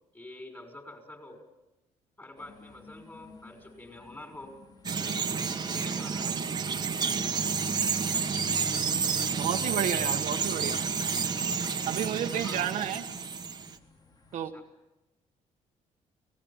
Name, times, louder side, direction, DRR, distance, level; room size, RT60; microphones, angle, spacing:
voice 1, 0.1-1.4 2.2-4.6 5.7-6.4 12.4-12.9 14.5-14.6, left 2 dB, 15° left, 4 dB, 6.0 m, -46 dB
sound 1, 2.4-14.5, left 4 dB, 30° left, 2.5 m, -55 dB
Bird vocalization bird call bird song, 4.8-13.7, right 5 dB, 30° right, 1.5 m, -30 dB
voice 2, 9.4-10.8 11.8-13.0 14.3-14.5, right 9 dB, 70° right, 5 dB, 1.4 m, -31 dB
29.5 x 19.0 x 7.4 m, 0.98 s
cardioid pair, 130°, 13 cm